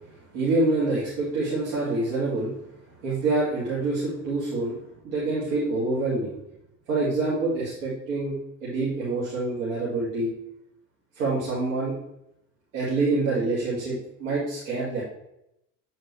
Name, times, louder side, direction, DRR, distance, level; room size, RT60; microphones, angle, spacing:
voice 1, 0.3-2.5 3.0-4.8 5.0-6.3 6.9-8.3 8.6-10.3 11.2-11.9 12.7-15.0, right 2 dB, 90° right, -9 dB, 2.1 m, -26 dB
8.2 x 4.3 x 3.1 m, 0.82 s
supercardioid pair, 80°, 39 cm